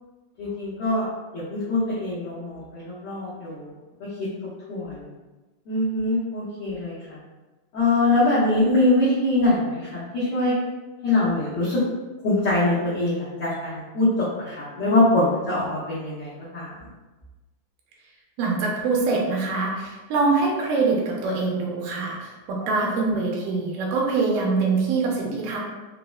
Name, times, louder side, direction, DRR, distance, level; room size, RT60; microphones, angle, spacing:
voice 1, 0.4-1.1 1.3-3.7 4.7-5.1 5.7-7.2 7.7-10.5 11.0-11.8 12.2-16.7 22.6-22.7, left 2 dB, 90° left, -11 dB, 1.2 m, -23 dB
voice 2, 18.4-25.6, right 3 dB, 85° right, -2 dB, 2.3 m, -24 dB
5.5 x 2.0 x 2.3 m, 1.2 s
omnidirectional pair, 3.9 m